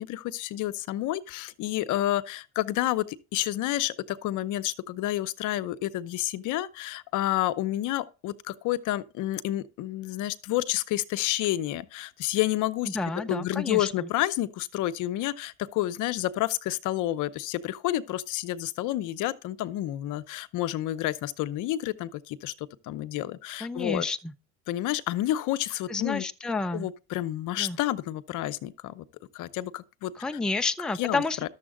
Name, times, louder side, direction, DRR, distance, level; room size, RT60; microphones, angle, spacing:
voice 1, 0.0-13.0 13.3-24.1 24.7-26.3 26.7-29.0 29.3-30.1 31.0-31.5, left 14 dB, 60° left, 0.8 m, -30 dB
voice 2, 12.9-13.9 23.6-24.3 25.9-26.9 27.6-27.8 30.2-31.5, left 3 dB, ahead, 0.5 m, -30 dB
11.5 x 7.2 x 3.7 m
supercardioid pair, 95°, 34 cm